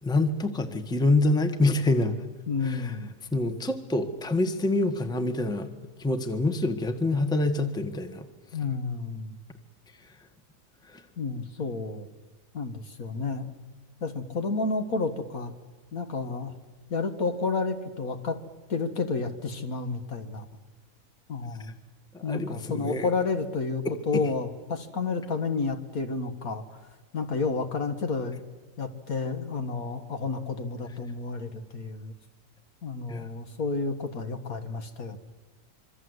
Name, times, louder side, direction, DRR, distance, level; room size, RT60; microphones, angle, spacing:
voice 1, 0.0-2.1 2.6-2.9 3.3-5.7 6.0-8.3 10.9-11.0 22.1-23.1 33.1-33.3, left 2 dB, 5° left, 8 dB, 1.3 m, -26 dB
voice 2, 2.5-3.1 8.5-9.4 11.2-12.1 12.5-13.5 14.0-15.5 15.9-16.5 16.9-18.4 18.7-20.5 21.3-21.7 22.2-26.8 27.1-28.4 28.8-32.1 32.8-35.2, left 4 dB, 55° left, 7 dB, 1.9 m, -31 dB
26.0 x 24.0 x 8.0 m, 1.3 s
omnidirectional pair, 1.9 m